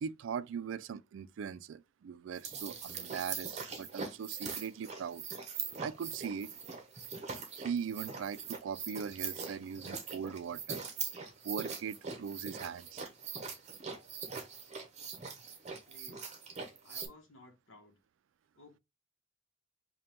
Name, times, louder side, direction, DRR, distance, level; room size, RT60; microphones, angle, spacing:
voice 1, 0.0-5.2 5.8-6.5 7.6-10.8 11.4-13.0, right 7 dB, 70° right, 0.3 m, -40 dB
sound 1, 2.3-17.1, right 5 dB, 35° right, 0.7 m, -42 dB
voice 2, 15.9-16.3 16.8-18.0 18.5-18.8, left 2 dB, 75° left, 0.9 m, -57 dB
5.1 x 2.2 x 2.9 m
head